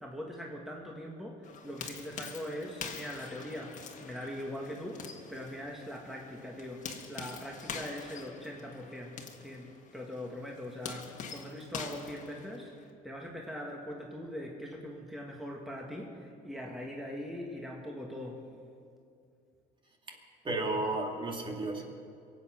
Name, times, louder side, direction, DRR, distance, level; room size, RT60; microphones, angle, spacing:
voice 1, 0.0-5.0 5.3-9.1 9.4-12.7 13.0-18.4, left 1 dB, ahead, -1 dB, 1.8 m, -41 dB
sound 1, 1.4-12.9, left 5 dB, 45° left, 1.7 m, -45 dB
voice 2, 20.4-21.8, right 2 dB, 30° right, 1 dB, 2.2 m, -33 dB
22.5 x 8.5 x 5.9 m, 2.4 s
cardioid pair, 110°, 17 cm